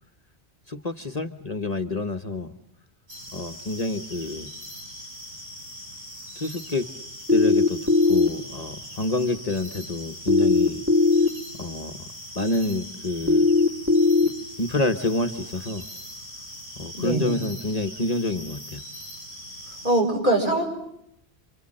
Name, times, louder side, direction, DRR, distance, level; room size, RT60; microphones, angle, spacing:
voice 1, 0.7-2.5 3.3-4.5 6.3-6.9 7.3-10.8 11.6-12.0 12.3-13.5 14.2-14.3 14.6-15.9 16.8-18.8, left 2 dB, 40° left, 7 dB, 1.3 m, -28 dB
sound 1, 3.1-20.0, equal, 75° right, 7.1 m, -41 dB
sound 2, 7.3-8.3 10.3-11.3 13.3-14.3, left 3 dB, 15° right, 2.5 m, -18 dB
voice 2, 17.0-17.4 19.8-20.7, right 1 dB, 45° right, 1 dB, 7.1 m, -22 dB
29.5 x 26.0 x 7.7 m, 0.78 s
omnidirectional pair, 1.1 m